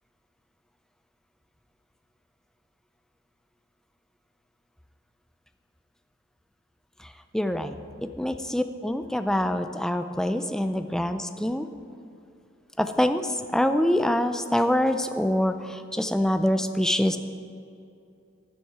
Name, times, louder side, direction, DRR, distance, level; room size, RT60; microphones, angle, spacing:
voice 1, 7.3-7.7 8.2-11.7 12.8-13.2 13.5-17.2, left 1 dB, 5° left, 8 dB, 0.4 m, -25 dB
11.0 x 9.4 x 4.8 m, 2.6 s
head